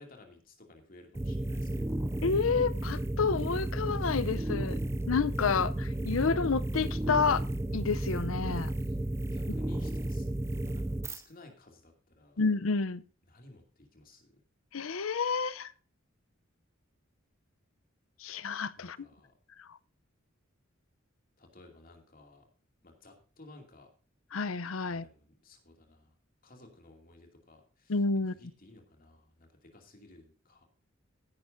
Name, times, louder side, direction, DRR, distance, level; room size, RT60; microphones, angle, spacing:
voice 1, 0.0-2.1 8.8-9.0 9.3-10.3 10.5-12.4 13.3-14.4 18.8-19.3 21.4-22.5 22.8-23.9 24.9-26.1 26.4-30.6, left 2 dB, 45° left, 2.5 m, -56 dB
sound 1, 1.1-11.2, right 1 dB, 15° right, 0.4 m, -33 dB
voice 2, 2.2-4.8 5.1-7.4 7.7-8.7 12.4-13.0 14.7-15.7 18.2-19.0 19.7-19.8 24.3-25.0 27.9-28.3, left 4 dB, 80° left, 0.7 m, -29 dB
15.5 x 10.5 x 2.7 m
head